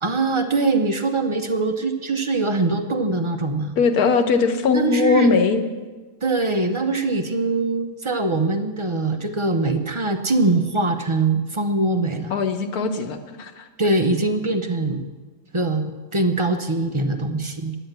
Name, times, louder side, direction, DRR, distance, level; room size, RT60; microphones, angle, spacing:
voice 1, 0.0-3.8 4.7-5.3 6.2-12.4 13.8-15.0 15.5-17.8, right 3 dB, 35° right, 6 dB, 0.5 m, -22 dB
voice 2, 3.8-5.6 12.3-13.7, left 4 dB, 80° left, 7 dB, 1.5 m, -20 dB
10.5 x 9.0 x 7.9 m, 1.3 s
omnidirectional pair, 1.6 m